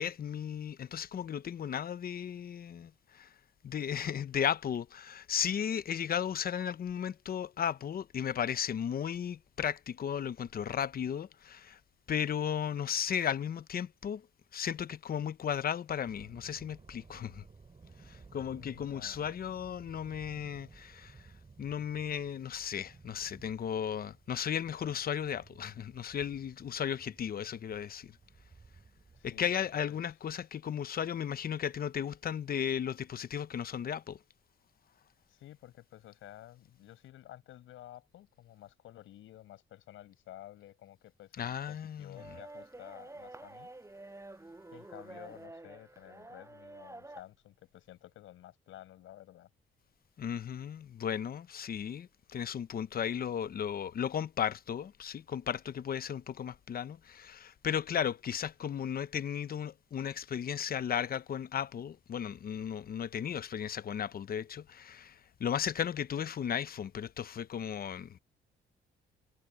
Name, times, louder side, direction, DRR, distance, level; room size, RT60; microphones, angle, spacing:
voice 1, 0.0-3.3 3.6-11.8 12.1-14.2 14.5-17.4 18.0-21.2 21.6-28.1 29.2-34.2 41.4-42.2 50.2-68.2, left 8 dB, 50° left, 0.8 m, -35 dB
sound 1, 16.0-29.5, right 4 dB, 30° right, 4.2 m, -57 dB
voice 2, 18.5-19.3 29.1-29.5 29.9-30.0 35.3-43.7 44.7-49.5, left 13 dB, 85° left, 6.8 m, -52 dB
sound 2, 42.1-47.2, right 2 dB, 15° right, 6.9 m, -49 dB
cardioid pair, 90°, 20 cm